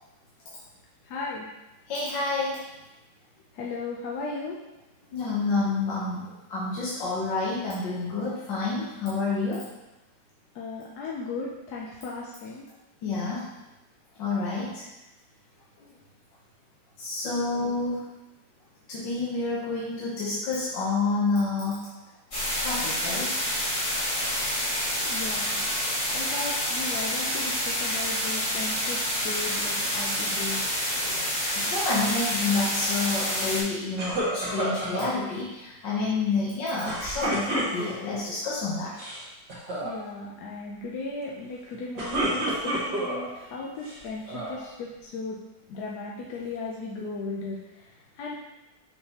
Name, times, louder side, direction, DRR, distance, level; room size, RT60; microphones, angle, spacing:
voice 1, 1.0-1.5 3.5-4.6 10.5-12.7 17.6-17.7 24.9-25.6 26.1-30.6 39.8-45.4 45.7-48.4, left 3 dB, 65° left, -3 dB, 1.2 m, -36 dB
voice 2, 1.9-2.6 5.1-9.6 13.0-13.4 14.2-14.8 17.0-18.1 18.9-21.9 22.6-23.3 24.4-24.5 30.9-31.3 31.6-38.9, left 3 dB, 85° left, -7 dB, 1.8 m, -29 dB
sound 1, 22.3-33.6, equal, 50° left, 2.6 m, -28 dB
sound 2, 34.0-35.1 36.8-38.1 38.8-39.2 39.5-39.9 41.7-43.3 43.8-44.6, right 1 dB, 75° right, 2.2 m, -30 dB
6.6 x 5.6 x 2.9 m, 1.0 s
omnidirectional pair, 1.9 m